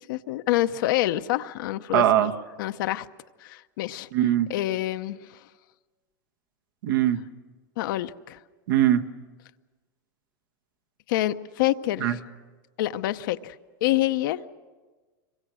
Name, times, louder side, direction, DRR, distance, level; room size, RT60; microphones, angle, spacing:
voice 1, 0.1-2.0 2.6-3.1 3.4-4.1 4.5-5.2 7.8-8.4 11.1-12.2 12.8-13.6 13.8-14.4, left 15 dB, 70° left, 10 dB, 0.7 m, -26 dB
voice 2, 1.9-2.3 4.1-4.5 6.8-7.2 8.7-9.0 12.0-12.2, right 11 dB, 75° right, 7 dB, 1.3 m, -21 dB
26.0 x 23.5 x 6.2 m, 1.3 s
supercardioid pair, 125°, 11 cm